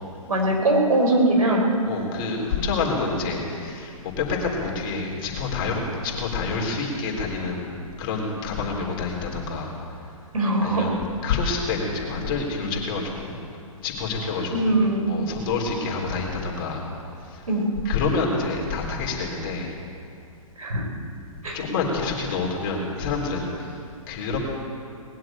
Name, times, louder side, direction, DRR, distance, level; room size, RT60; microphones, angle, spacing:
voice 1, 0.3-1.7 10.3-10.9 14.5-15.1 17.5-17.7 20.6-20.9 21.4-21.6, right 1 dB, 75° right, 0 dB, 4.2 m, -21 dB
voice 2, 1.8-7.7 8.0-10.0 10.6-10.9 11.2-13.4 13.8-16.9 17.2-17.5 17.8-19.8 21.5-23.7 24.1-24.4, left 4 dB, 40° left, -1 dB, 3.5 m, -28 dB
20.0 x 7.7 x 8.9 m, 2.6 s
hypercardioid pair, 130°, 18 cm